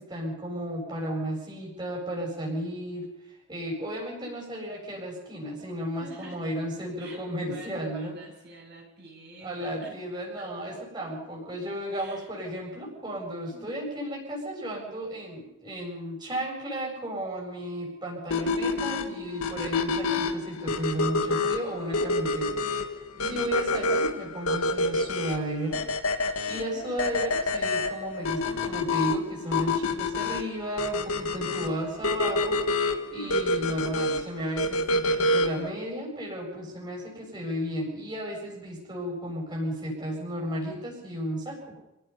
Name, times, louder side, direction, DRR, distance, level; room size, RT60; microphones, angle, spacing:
voice 1, 0.0-3.1 3.5-8.1 9.4-22.6 22.9-23.0 23.3-25.9 26.5-41.7, equal, 20° right, -3 dB, 7.9 m, -34 dB
voice 2, 5.9-6.4 7.0-9.9 10.4-10.7 11.1-11.2 11.9-12.3 13.5-13.8 22.4-22.7 23.1-23.6 26.5-26.9 33.2-33.6, right 1 dB, 50° right, -2 dB, 7.3 m, -48 dB
sound 1, 18.3-35.7, left 2 dB, 90° left, 1.7 m, -28 dB
29.0 x 17.5 x 5.7 m, 0.93 s
head